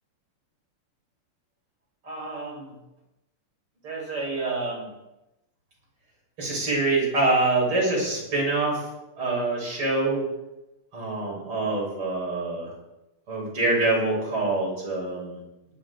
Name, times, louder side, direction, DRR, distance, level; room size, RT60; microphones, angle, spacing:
voice 1, 2.1-2.7 3.8-4.9 6.4-8.8 9.2-10.2 10.9-12.7 13.3-15.4, right 2 dB, 75° right, -4 dB, 7.8 m, -25 dB
18.0 x 10.5 x 5.0 m, 0.93 s
omnidirectional pair, 2.4 m